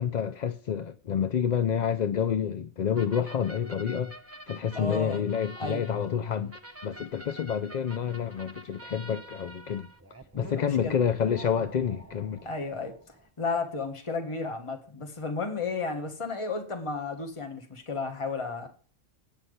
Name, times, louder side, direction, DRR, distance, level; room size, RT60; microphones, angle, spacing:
voice 1, 0.0-4.1 4.5-6.5 6.8-9.9 10.4-12.4, left 8 dB, 50° left, 0.5 m, -28 dB
sound 1, 2.9-13.3, right 1 dB, 15° right, 0.6 m, -47 dB
voice 2, 4.7-5.2 5.6-5.8 10.3-11.0 12.4-13.0 13.4-18.7, left 3 dB, 25° left, 1.4 m, -33 dB
8.8 x 5.7 x 8.0 m
omnidirectional pair, 1.3 m